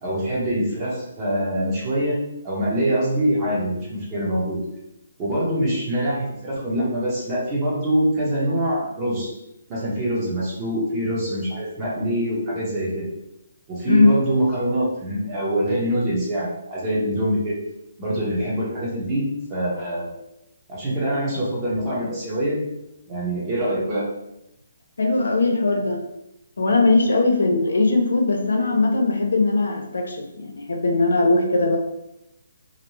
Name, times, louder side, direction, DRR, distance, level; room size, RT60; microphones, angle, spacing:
voice 1, 0.0-2.2 2.4-4.6 5.2-9.3 9.7-13.1 13.7-17.5 18.0-20.1 20.7-22.6 23.1-24.1, right 1 dB, 20° right, -6 dB, 0.9 m, -24 dB
voice 2, 25.0-26.0 26.6-31.8, left 3 dB, 90° left, 2 dB, 0.6 m, -20 dB
2.5 x 2.0 x 3.1 m, 0.86 s
hypercardioid pair, 165°, 0 cm